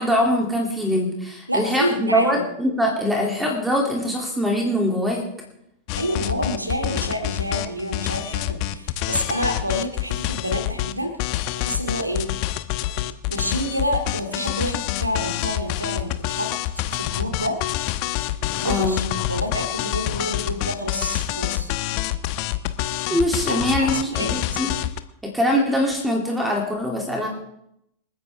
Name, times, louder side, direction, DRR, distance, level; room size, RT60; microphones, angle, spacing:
voice 1, 0.0-5.2 18.6-19.0 23.1-24.7 25.2-27.3, equal, 5° right, 0 dB, 2.9 m, -23 dB
voice 2, 1.5-2.4 6.0-11.1 11.6-12.3 13.3-17.6 18.6-21.7 23.5-24.3, equal, 85° right, 4 dB, 2.7 m, -28 dB
sound 1, 5.9-10.9 11.2-25.0, left 14 dB, 45° left, 0.8 m, -27 dB
27.5 x 10.0 x 3.6 m, 0.77 s
figure-of-eight pair, 90°, 0 cm